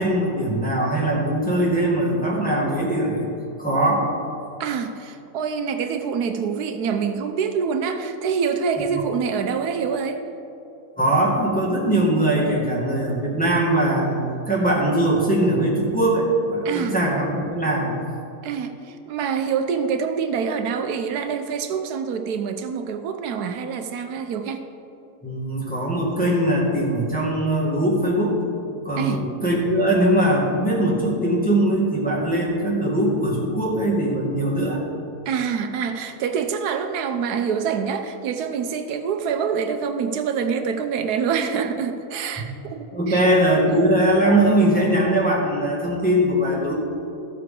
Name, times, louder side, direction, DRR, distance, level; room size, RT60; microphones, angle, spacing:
voice 1, 0.0-3.3 3.6-4.1 11.0-17.9 25.2-28.4 28.8-34.8 42.4-42.5 42.9-46.7, right 1 dB, 5° left, -6 dB, 1.8 m, -21 dB
voice 2, 4.6-10.2 16.6-17.0 18.4-24.6 29.0-29.3 35.3-43.3 43.7-43.9, right 6 dB, 85° right, 7 dB, 1.2 m, -26 dB
14.0 x 7.6 x 3.8 m, 2.7 s
omnidirectional pair, 1.7 m